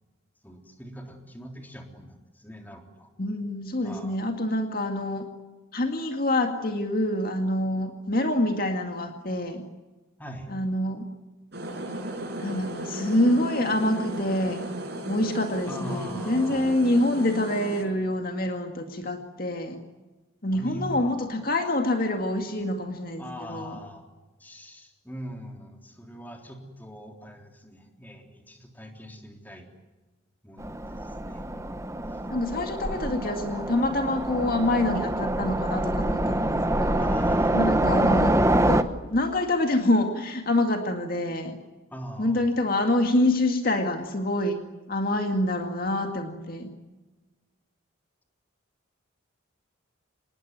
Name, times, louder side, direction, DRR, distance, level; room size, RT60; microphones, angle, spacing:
voice 1, 0.4-3.1 3.8-4.3 10.2-10.5 15.7-16.8 20.5-21.1 23.2-24.1 24.4-29.7 30.4-31.7 32.1-32.2 32.9-33.0 37.0-37.8 41.9-42.5, equal, 10° left, 3 dB, 3.6 m, -42 dB
voice 2, 3.2-5.3 5.7-9.6 10.5-11.1 12.4-14.7 15.1-19.8 20.4-23.2 23.5-23.8 32.3-37.1 37.5-38.9 39.1-41.6 42.2-44.6 44.9-46.7, left 1 dB, 45° left, 5 dB, 2.1 m, -26 dB
sound 1, 11.5-17.8, right 1 dB, 55° right, 6.3 m, -35 dB
Train, 30.6-38.8, right 1 dB, 15° right, 1.1 m, -25 dB
26.5 x 20.0 x 9.5 m, 1.2 s
head